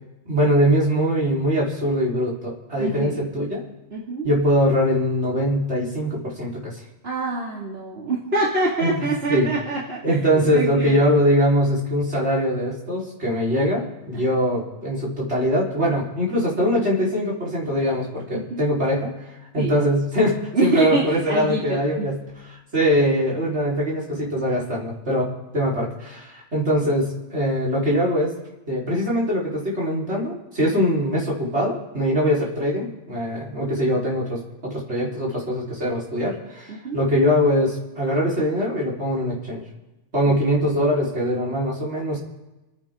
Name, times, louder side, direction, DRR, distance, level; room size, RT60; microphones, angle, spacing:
voice 1, 0.3-3.6 4.2-6.8 8.8-9.5 10.0-19.2 19.5-22.2 22.7-28.3 28.7-39.6 40.1-42.2, equal, 80° right, -4 dB, 4.6 m, -22 dB
voice 2, 2.8-3.2 3.9-4.3 7.0-11.1 14.1-14.2 18.3-18.7 19.6-19.7 20.5-22.1 33.5-33.7 36.7-37.0 40.2-40.3, right 2 dB, 65° right, -4 dB, 2.7 m, -25 dB
29.0 x 10.0 x 3.8 m, 1.0 s
omnidirectional pair, 1.1 m